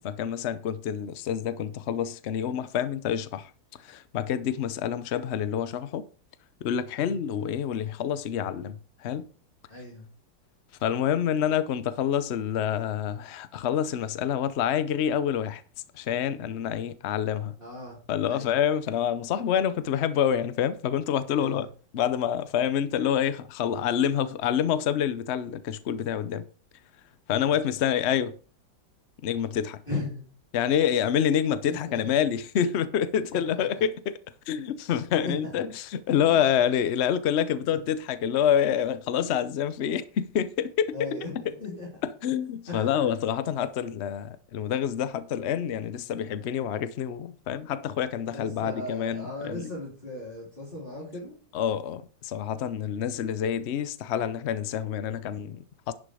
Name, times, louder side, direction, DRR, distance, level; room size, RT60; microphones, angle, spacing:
voice 1, 0.0-3.5 3.8-6.0 6.6-9.3 10.8-15.6 15.9-17.5 18.1-21.7 21.9-26.5 27.3-28.4 29.2-29.8 30.5-34.2 34.5-41.0 41.4-41.5 42.0-49.7 51.5-55.9, left 9 dB, 85° left, 0.5 m, -27 dB
voice 2, 9.7-10.1 17.6-18.0 18.3-18.5 21.4-21.6 27.3-27.5 29.9-30.2 31.7-32.2 33.3-33.8 35.2-35.4 40.9-41.9 42.7-43.1 48.3-51.3, left 2 dB, 25° left, 3.9 m, -37 dB
11.0 x 6.2 x 4.9 m
omnidirectional pair, 2.1 m